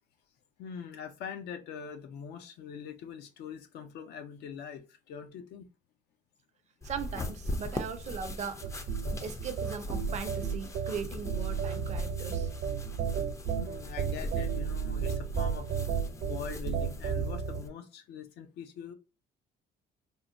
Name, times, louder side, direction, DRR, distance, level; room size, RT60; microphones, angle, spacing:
voice 1, 0.6-5.7 13.6-15.7 16.3-18.9, left 7 dB, 80° left, 0.6 m, -43 dB
sound 1, 6.8-17.7, left 1 dB, 15° left, 0.4 m, -40 dB
voice 2, 6.8-8.8 9.2-12.5, right 6 dB, 45° right, 0.5 m, -39 dB
sound 2, 8.6-17.6, right 7 dB, 75° right, 0.8 m, -33 dB
3.6 x 2.0 x 2.5 m
cardioid pair, 110°, 17 cm